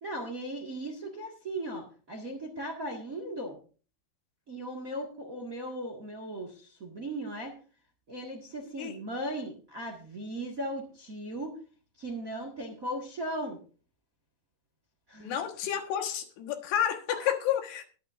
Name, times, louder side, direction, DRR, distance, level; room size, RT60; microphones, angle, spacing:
voice 1, 0.0-3.6 4.5-7.5 8.1-11.6 12.0-13.6 15.1-15.4 17.2-17.3, right 1 dB, 40° right, 2 dB, 1.2 m, -37 dB
voice 2, 15.2-17.8, left 10 dB, 90° left, 5 dB, 3.6 m, -30 dB
21.0 x 9.0 x 2.6 m, 0.38 s
omnidirectional pair, 4.6 m